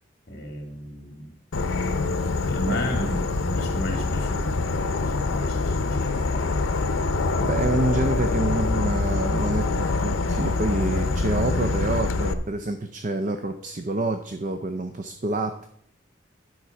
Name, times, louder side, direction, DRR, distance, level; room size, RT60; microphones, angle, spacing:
voice 1, 0.3-1.3 2.4-7.1 7.6-7.7, equal, 55° left, 3 dB, 2.2 m, -34 dB
Insect / Frog, 1.5-12.3, left 3 dB, 90° left, 0.7 m, -25 dB
voice 2, 7.4-15.7, right 2 dB, 40° right, 7 dB, 0.5 m, -27 dB
11.0 x 4.5 x 5.8 m, 0.68 s
head